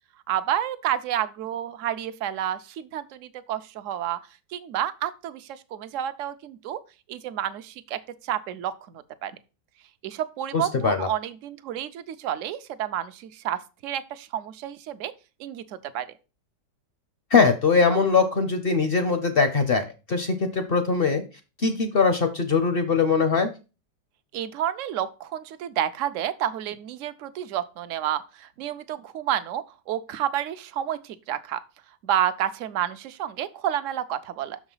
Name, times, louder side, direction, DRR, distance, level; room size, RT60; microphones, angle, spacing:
voice 1, 0.3-4.2 4.5-6.8 7.1-8.7 9.2-9.3 10.0-15.1 15.4-16.1 24.3-31.6 32.0-34.6, right 11 dB, 65° right, 12 dB, 0.8 m, -30 dB
voice 2, 10.5-11.1 17.3-21.2 21.6-23.5, left 5 dB, 50° left, 9 dB, 0.7 m, -21 dB
6.5 x 4.9 x 5.5 m, 0.31 s
omnidirectional pair, 1.8 m